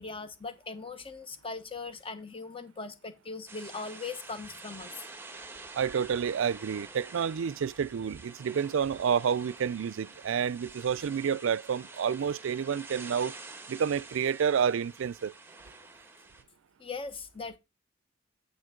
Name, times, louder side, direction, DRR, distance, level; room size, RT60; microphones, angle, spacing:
voice 1, 0.0-5.0 16.8-17.6, left 4 dB, 30° left, 1.1 m, -40 dB
sound 1, 3.5-16.4, right 3 dB, 10° right, 1.3 m, -48 dB
voice 2, 5.7-13.3 13.7-15.3, right 7 dB, 75° right, 0.4 m, -29 dB
9.3 x 7.0 x 3.7 m
head